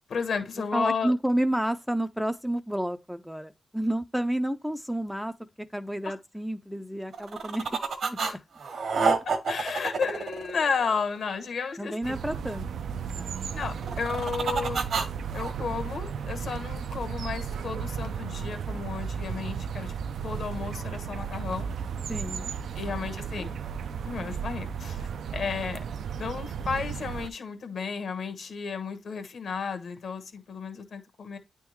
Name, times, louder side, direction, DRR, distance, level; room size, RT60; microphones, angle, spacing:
voice 1, 0.1-1.1 6.0-6.1 8.2-8.4 9.2-12.1 13.5-14.8 15.3-19.9 20.2-21.7 22.7-23.5 24.0-25.8 26.2-31.4, left 5 dB, 65° left, 1.2 m, -33 dB
voice 2, 0.7-5.3 5.7-8.2 11.8-12.7 13.1-13.6 22.1-22.6 22.8-23.1 23.4-23.5, right 1 dB, ahead, 0.4 m, -30 dB
sound 1, 7.1-8.3 8.6-11.1 13.7-15.5, right 5 dB, 70° right, 1.2 m, -28 dB
sound 2, 12.0-27.3, right 7 dB, 90° right, 0.4 m, -34 dB
9.5 x 3.5 x 3.1 m
wide cardioid pair, 130°, 0 cm